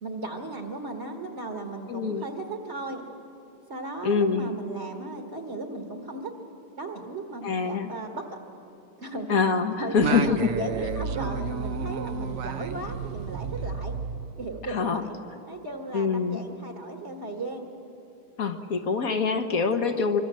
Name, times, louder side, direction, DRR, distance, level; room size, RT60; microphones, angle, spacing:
voice 1, 0.0-3.1 3.7-6.3 6.7-8.4 9.0-9.4 9.8-14.0 14.4-15.2 15.5-17.7, right 2 dB, 35° right, 3 dB, 1.6 m, -36 dB
voice 2, 1.9-2.3 4.0-4.5 7.4-7.9 9.3-10.4 14.7-15.1 15.9-16.4 18.4-20.2, left 5 dB, 50° left, 7 dB, 1.4 m, -25 dB
Singing, 10.0-14.7, right 5 dB, 60° right, 0.9 m, -32 dB
25.0 x 24.0 x 7.6 m, 2.8 s
omnidirectional pair, 2.2 m